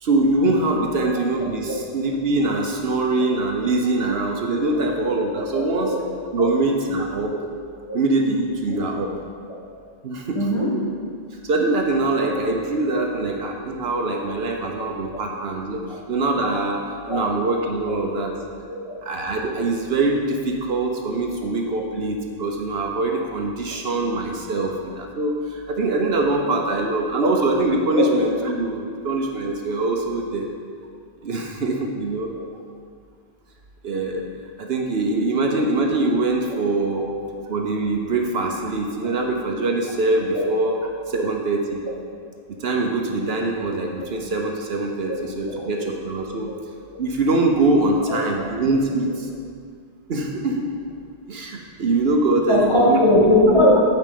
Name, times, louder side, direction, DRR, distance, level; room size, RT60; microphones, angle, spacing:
voice 1, 0.0-5.9 6.3-7.3 7.9-9.1 10.0-10.5 11.5-15.8 16.1-18.3 19.0-30.5 31.2-32.3 33.8-34.2 34.6-37.1 37.5-40.8 41.1-41.8 42.6-46.5 47.0-49.3 50.1-50.7 51.3-53.0, right 2 dB, 65° right, 2 dB, 1.1 m, -23 dB
voice 2, 5.5-6.0 6.4-6.5 7.8-8.0 8.7-8.8 9.5-9.6 10.4-10.7 13.1-13.2 14.7-14.8 17.1-17.3 17.8-18.0 18.7-19.0 27.2-27.3 27.9-28.1 32.3-32.4 37.0-37.1 40.3-40.4 45.1-45.2 45.5-45.6 48.1-48.5 52.5-53.8, left 1 dB, 25° left, -6 dB, 2.0 m, -20 dB
7.9 x 5.2 x 7.5 m, 2.1 s
omnidirectional pair, 1.1 m